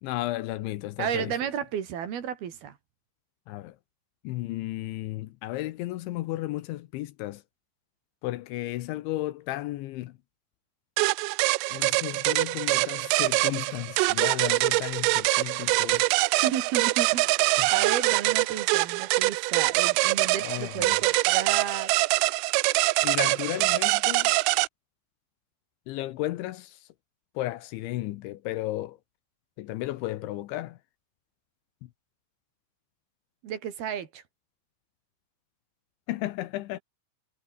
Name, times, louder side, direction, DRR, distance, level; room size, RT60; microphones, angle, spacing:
voice 1, 0.0-1.3 3.5-3.8 4.2-7.4 8.2-10.2 11.7-16.1 17.6-17.7 20.4-21.0 23.0-24.4 25.9-26.9 27.3-29.0 29.6-30.8 31.8-31.9 36.1-36.8, left 16 dB, 80° left, 3.1 m, -34 dB
voice 2, 1.0-2.8 15.9-16.0 16.4-21.9 33.4-34.2, right 9 dB, 55° right, 3.8 m, -33 dB
sound 1, 11.0-24.7, right 25 dB, 85° right, 3.2 m, -24 dB
omnidirectional pair, 5.8 m